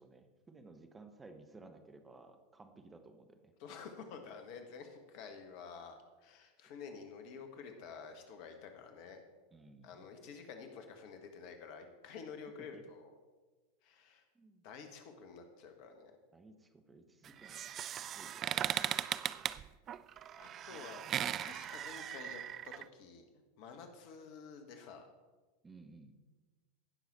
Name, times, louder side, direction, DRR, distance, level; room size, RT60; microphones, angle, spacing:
voice 1, 0.0-3.5 9.5-10.1 12.6-12.8 14.3-14.6 16.3-19.1 25.6-26.1, right 3 dB, 15° right, 7 dB, 1.1 m, -57 dB
voice 2, 3.6-9.2 9.8-13.1 13.8-14.2 14.6-16.1 20.4-21.0 21.4-23.2 23.6-25.1, left 5 dB, 50° left, 6 dB, 1.6 m, -50 dB
sound 1, 17.2-22.8, right 10 dB, 35° right, 0.4 m, -38 dB
16.5 x 6.3 x 4.3 m, 1.3 s
figure-of-eight pair, 90°, 0 cm